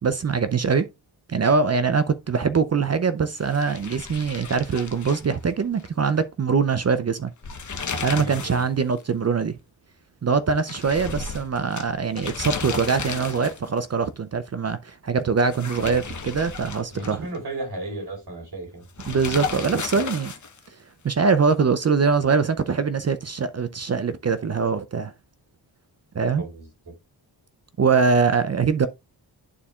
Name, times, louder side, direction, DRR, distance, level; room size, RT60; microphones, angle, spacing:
voice 1, 0.0-0.9 1.3-7.3 8.0-9.6 10.2-17.3 19.1-20.3 21.0-25.1 26.1-26.4 27.8-28.9, right 5 dB, 35° right, 0.6 m, -23 dB
sound 1, 3.4-5.9 6.2-6.3 7.3-8.7 9.0-9.1 10.7-13.8 15.4-17.4 19.0-20.7, left 5 dB, 40° left, 1.0 m, -34 dB
voice 2, 8.1-8.6 16.9-18.8 26.4-26.7, right 2 dB, 55° right, 4.5 m, -34 dB
11.0 x 4.1 x 2.4 m
cardioid pair, 55°, 45 cm